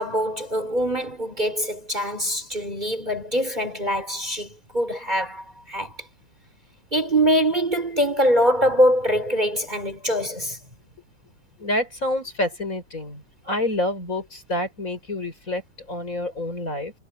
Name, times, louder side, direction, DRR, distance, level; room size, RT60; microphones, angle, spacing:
voice 1, 0.0-6.1 6.9-10.6, equal, 20° right, 4.6 m, -23 dB
voice 2, 11.6-15.6 15.9-16.9, left 1 dB, 35° left, 5.9 m, -28 dB
omnidirectional pair, 2.3 m